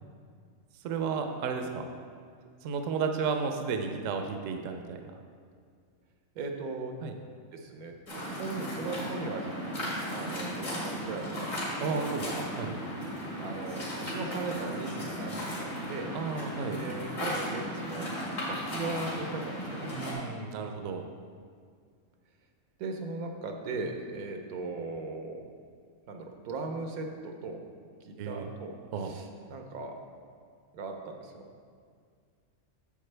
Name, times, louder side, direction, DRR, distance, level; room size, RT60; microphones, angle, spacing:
voice 1, 0.8-1.8 2.6-5.0 7.0-7.1 11.8-12.2 12.5-12.8 16.1-16.8 19.9-21.0 28.2-28.5 28.9-29.1, right 5 dB, 70° right, 5 dB, 0.9 m, -33 dB
voice 2, 6.3-6.9 7.5-7.9 8.3-9.5 10.1-12.1 13.4-16.1 16.7-18.1 18.5-19.9 22.8-25.5 26.1-27.6 28.0-28.7 29.0-30.0 30.7-31.6, right 3 dB, 85° right, 4 dB, 1.3 m, -38 dB
Waves surf, 8.1-20.1, equal, 60° left, 2.4 m, -36 dB
8.6 x 7.2 x 3.3 m, 2.1 s
omnidirectional pair, 1.5 m